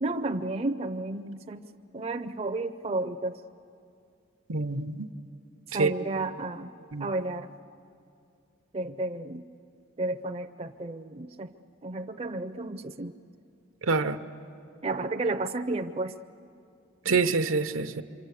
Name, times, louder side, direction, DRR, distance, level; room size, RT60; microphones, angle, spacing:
voice 1, 0.0-1.7 1.9-3.4 5.7-6.7 7.0-7.5 8.7-9.4 10.0-11.5 11.8-13.1 14.8-16.1 17.0-17.2, right 2 dB, 30° right, 6 dB, 0.6 m, -32 dB
voice 2, 4.5-5.1 5.8-5.9 6.9-7.1 13.8-14.2 17.0-18.0, right 4 dB, 75° right, 9 dB, 0.9 m, -26 dB
26.5 x 25.0 x 8.3 m, 2.5 s
head